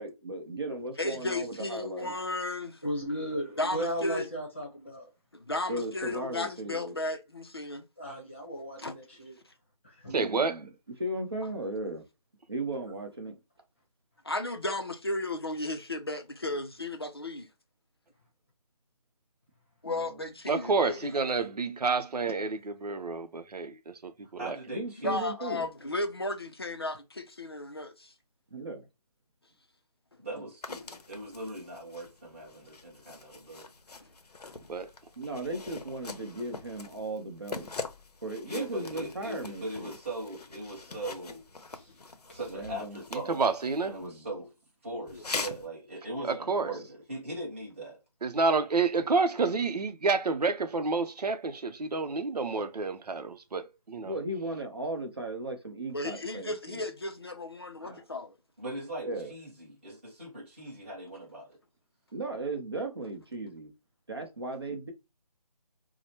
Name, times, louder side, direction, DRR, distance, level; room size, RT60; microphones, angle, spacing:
voice 1, 0.0-2.1 5.7-6.9 10.1-10.7 11.0-12.0 12.5-13.3 19.8-20.2 24.7-25.7 28.5-28.9 35.2-37.7 38.2-39.9 42.5-43.0 44.0-44.3 46.6-46.9 54.0-56.8 57.8-58.0 59.0-59.3 62.1-63.7 64.1-64.9, right 2 dB, 40° right, 0.8 m, -36 dB
voice 2, 1.0-2.8 3.6-4.2 5.3-7.9 8.8-8.9 14.2-17.5 19.8-21.2 25.0-28.1 34.0-34.1 34.4-34.7 45.1-45.2 55.9-58.3, left 2 dB, 40° left, 0.5 m, -34 dB
voice 3, 2.8-5.1 8.0-9.4 9.8-10.2 41.7-41.9 42.3-42.4, equal, 20° left, 0.9 m, -36 dB
voice 4, 10.1-10.6 20.5-24.6 34.7-34.9 43.1-44.0 46.2-46.7 48.2-54.2, right 4 dB, 80° right, 0.7 m, -29 dB
voice 5, 24.2-25.2 30.2-33.7 38.4-41.4 42.2-43.4 43.8-44.5 44.8-48.0 58.6-61.6, right 1 dB, 20° right, 1.2 m, -40 dB
sound 1, 30.6-44.1 45.1-45.7, left 4 dB, 85° left, 0.7 m, -43 dB
4.6 x 2.1 x 2.8 m
figure-of-eight pair, 180°, 20 cm